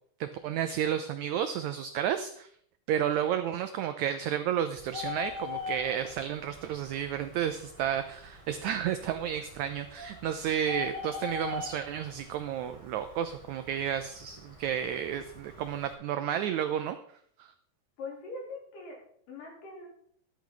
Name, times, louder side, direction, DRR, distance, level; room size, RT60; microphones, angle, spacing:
voice 1, 0.2-2.5 2.9-17.0 17.4-17.5, right 9 dB, 85° right, 9 dB, 1.6 m, -32 dB
Bird, 4.8-15.9, left 5 dB, 10° left, 2.2 m, -43 dB
voice 2, 18.0-19.0 19.3-19.9, left 3 dB, 70° left, -1 dB, 4.8 m, -42 dB
13.0 x 10.5 x 3.9 m, 0.63 s
omnidirectional pair, 4.0 m